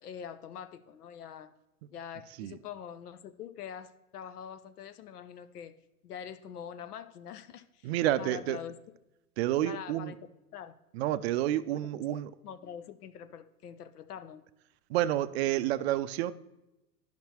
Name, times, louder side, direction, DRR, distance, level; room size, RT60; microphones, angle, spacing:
voice 1, 0.0-1.5 1.9-5.7 6.0-7.9 8.2-8.8 9.6-10.2 10.5-10.7 11.7-14.4, left 8 dB, 75° left, 12 dB, 0.7 m, -44 dB
voice 2, 7.8-8.6 9.4-10.1 10.9-12.3 14.9-16.3, right 13 dB, 45° right, 13 dB, 0.4 m, -29 dB
10.0 x 5.8 x 2.9 m, 0.96 s
hypercardioid pair, 100°, 46 cm